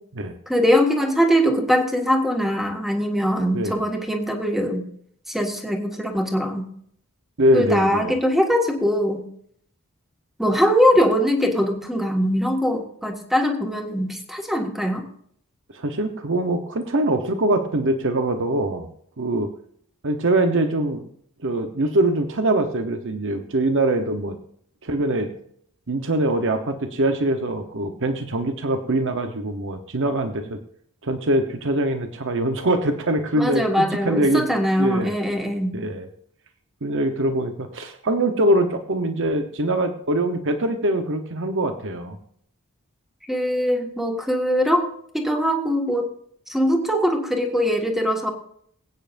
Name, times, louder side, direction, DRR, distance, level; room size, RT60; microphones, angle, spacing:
voice 1, 0.5-4.9 5.3-6.6 7.5-9.2 10.4-15.1 33.4-35.7 43.3-44.9 45.1-46.1 46.5-48.3, equal, ahead, 2 dB, 1.8 m, -21 dB
voice 2, 7.4-8.1 15.7-18.9 19.2-19.5 20.0-21.1 21.4-24.4 24.8-25.3 25.9-30.6 31.0-34.5 34.8-35.2 35.7-36.1 36.8-42.2, right 1 dB, 60° right, 7 dB, 1.0 m, -23 dB
22.0 x 9.1 x 2.6 m, 0.65 s
head